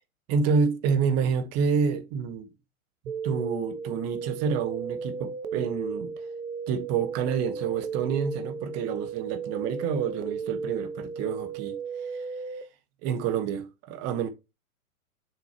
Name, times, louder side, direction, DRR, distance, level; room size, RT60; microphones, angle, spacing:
voice 1, 0.3-2.5 3.2-6.1 6.7-11.8 12.1-12.3 13.0-14.3, right 6 dB, 35° right, 1.6 m, -28 dB
sound 1, 3.1-12.6, right 5 dB, 70° right, 1.2 m, -35 dB
7.0 x 6.4 x 3.0 m
figure-of-eight pair, 110°, 43 cm